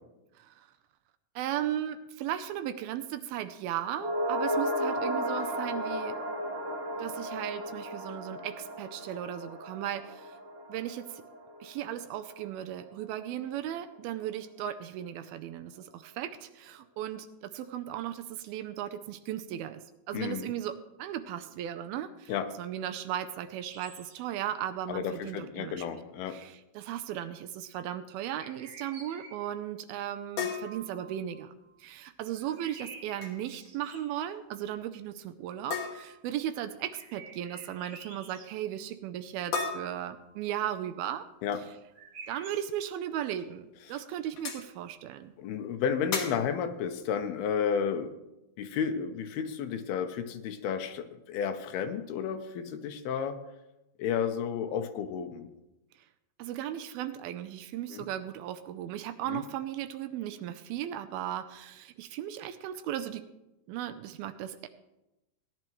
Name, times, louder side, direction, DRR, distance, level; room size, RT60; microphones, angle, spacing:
voice 1, 1.4-6.2 7.0-10.4 10.7-11.2 11.6-19.8 20.1-20.7 21.0-22.3 22.6-25.8 26.3-31.5 31.8-41.3 42.3-45.3 56.4-63.2 63.7-64.7, right 11 dB, 80° right, 9 dB, 2.4 m, -36 dB
sound 1, 3.9-12.4 12.7-12.8, equal, 25° right, 1.8 m, -34 dB
voice 2, 20.1-20.5 22.3-22.5 24.9-26.4 41.4-41.6 45.4-48.1 48.6-53.4 54.0-55.5 57.9-58.1 59.3-59.4, left 7 dB, 85° left, 8 dB, 2.7 m, -32 dB
sound 2, 23.6-24.4 28.3-29.6 32.3-34.2 36.9-38.5 41.9-42.7, right 4 dB, 50° right, 1.9 m, -49 dB
sound 3, 30.4-31.7 33.0-33.4 33.7-33.9 34.2-34.3 35.7-36.4 39.5-40.7 42.7-42.8 43.4-43.5 44.4-44.7 46.1-46.6, left 5 dB, 55° left, 2.1 m, -36 dB
18.0 x 11.0 x 3.1 m, 0.96 s
omnidirectional pair, 4.5 m